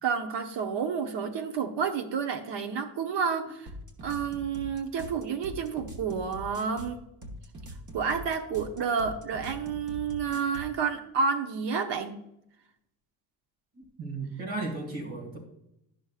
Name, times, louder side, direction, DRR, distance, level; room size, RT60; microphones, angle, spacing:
voice 1, 0.0-3.7 4.0-7.0 7.9-12.1, right 6 dB, 65° right, 6 dB, 0.9 m, -30 dB
sound 1, 3.7-10.8, equal, 40° right, 1.2 m, -43 dB
voice 2, 13.8-15.4, right 3 dB, 80° right, 0 dB, 2.2 m, -35 dB
10.5 x 6.3 x 2.4 m, 0.82 s
supercardioid pair, 70°, 46 cm